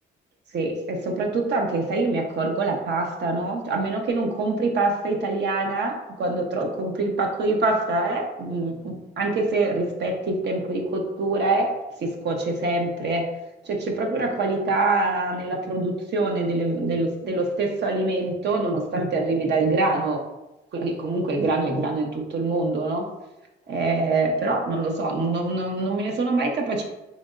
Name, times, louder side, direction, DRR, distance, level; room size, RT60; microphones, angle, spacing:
voice 1, 0.5-11.7 12.0-13.3 13.6-20.2 20.7-23.1 23.7-26.8, right 2 dB, 60° right, 2 dB, 0.9 m, -25 dB
5.3 x 3.3 x 2.5 m, 1.0 s
cardioid pair, 90°, 20 cm